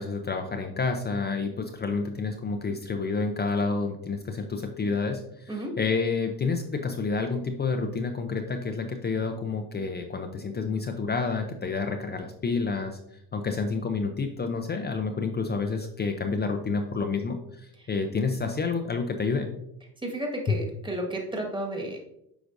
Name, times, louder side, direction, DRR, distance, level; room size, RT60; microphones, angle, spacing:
voice 1, 0.0-13.0 13.3-19.5, left 4 dB, 25° left, 5 dB, 0.5 m, -29 dB
voice 2, 20.0-22.0, right 1 dB, 10° right, 1 dB, 1.6 m, -32 dB
8.0 x 5.0 x 2.6 m, 0.77 s
supercardioid pair, 100°, 44 cm